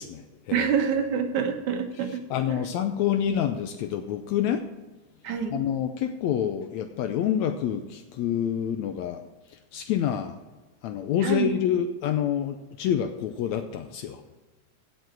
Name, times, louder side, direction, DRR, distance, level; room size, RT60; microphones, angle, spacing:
voice 1, 0.0-0.7 2.3-4.7 5.5-9.2 9.5-10.4 10.8-14.2, left 9 dB, 75° left, 8 dB, 1.8 m, -27 dB
voice 2, 0.5-2.2 5.2-5.6 11.2-11.6, right 7 dB, 70° right, 5 dB, 2.5 m, -26 dB
16.5 x 6.8 x 4.6 m, 1.2 s
omnidirectional pair, 3.5 m